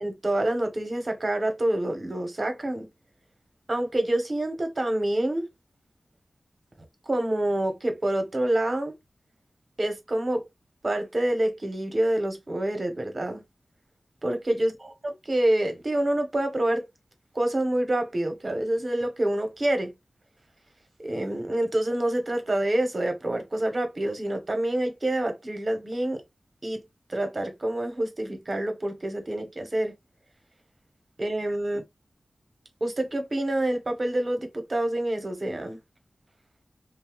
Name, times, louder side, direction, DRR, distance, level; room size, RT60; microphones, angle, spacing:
voice 1, 0.0-2.9 3.7-5.5 7.1-8.9 9.8-10.4 10.8-13.4 14.2-14.7 15.0-16.9 17.3-19.9 21.0-26.2 26.6-26.8 27.1-29.9 31.2-31.8 32.8-35.8, right 1 dB, 45° right, 0.8 m, -27 dB
2.7 x 2.0 x 2.9 m
wide cardioid pair, 70°, 0 cm